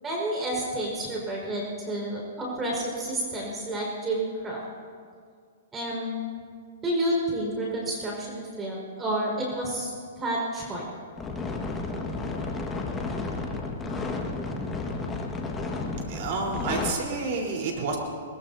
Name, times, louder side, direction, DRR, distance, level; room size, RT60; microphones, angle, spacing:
voice 1, 0.0-4.6 5.7-6.3 6.8-9.9 10.2-10.8, right 1 dB, 20° right, -3 dB, 5.1 m, -30 dB
sound 1, 11.2-16.9, left 3 dB, 15° left, 1.7 m, -32 dB
voice 2, 15.9-18.0, right 4 dB, 50° right, 0 dB, 4.1 m, -30 dB
22.0 x 21.0 x 2.8 m, 2.1 s
hypercardioid pair, 120°, 0 cm